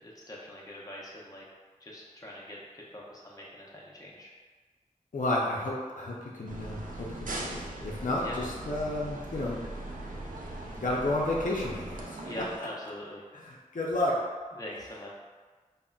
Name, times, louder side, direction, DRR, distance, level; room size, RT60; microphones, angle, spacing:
voice 1, 0.0-1.4 1.8-4.3 8.2-8.4 12.2-13.2 14.5-15.1, left 1 dB, 25° left, -4 dB, 0.6 m, -43 dB
voice 2, 5.1-9.6 10.8-12.4 13.3-14.2, left 1 dB, 75° left, -4 dB, 0.5 m, -32 dB
sound 1, 6.5-12.6, right 2 dB, 80° right, 0.4 m, -40 dB
3.7 x 2.1 x 2.2 m, 1.4 s
wide cardioid pair, 50°, 13 cm